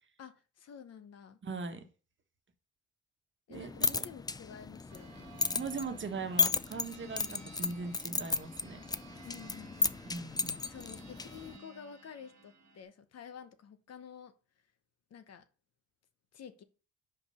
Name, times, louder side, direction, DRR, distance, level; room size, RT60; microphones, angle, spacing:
voice 1, 0.2-1.4 3.5-5.3 9.2-10.0 10.6-14.3 15.1-15.5 16.3-16.6, left 7 dB, 55° left, 1.0 m, -50 dB
voice 2, 1.4-1.8 3.5-4.0 5.5-8.8 10.0-10.7, right 4 dB, 40° right, 1.3 m, -40 dB
sound 1, 3.5-11.6, left 4 dB, 15° left, 0.4 m, -35 dB
sound 2, 4.9-12.8, right 4 dB, 65° right, 1.5 m, -55 dB
5.2 x 5.0 x 5.5 m
cardioid pair, 90°, 30 cm